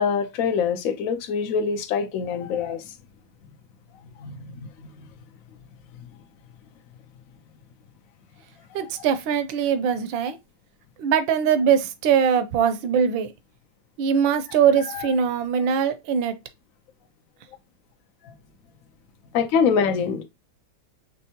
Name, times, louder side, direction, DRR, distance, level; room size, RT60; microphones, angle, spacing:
voice 1, 0.0-2.8 4.0-5.1 14.9-15.0 18.3-18.4 19.3-20.2, left 6 dB, 65° left, 0.8 m, -25 dB
voice 2, 8.7-10.4 11.0-13.3 14.0-16.4, right 7 dB, 80° right, 1.4 m, -22 dB
5.4 x 3.2 x 2.8 m
omnidirectional pair, 2.1 m